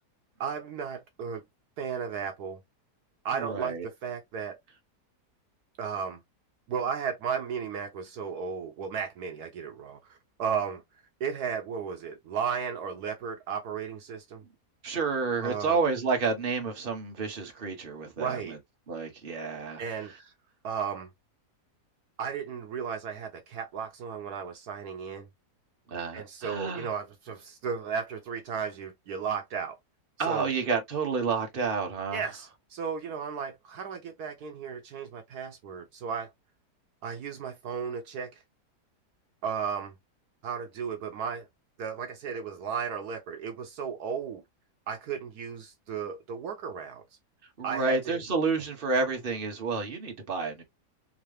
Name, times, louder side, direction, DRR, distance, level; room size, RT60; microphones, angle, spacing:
voice 1, 0.4-1.4 1.8-2.6 3.2-4.6 5.8-6.2 6.7-10.8 11.2-14.4 15.4-15.8 18.2-18.6 19.8-20.1 20.6-21.1 22.2-25.3 26.1-29.8 30.2-30.5 32.1-36.3 37.0-38.4 39.4-39.9 40.4-41.5 41.8-44.4 44.9-47.0 47.6-48.2, right 6 dB, 75° right, 1.3 m, -34 dB
voice 2, 3.4-3.9 14.8-18.6 18.9-19.8 25.9-26.9 30.2-32.2 47.6-50.6, right 4 dB, 35° right, 1.4 m, -30 dB
3.8 x 3.1 x 3.2 m
omnidirectional pair, 1.7 m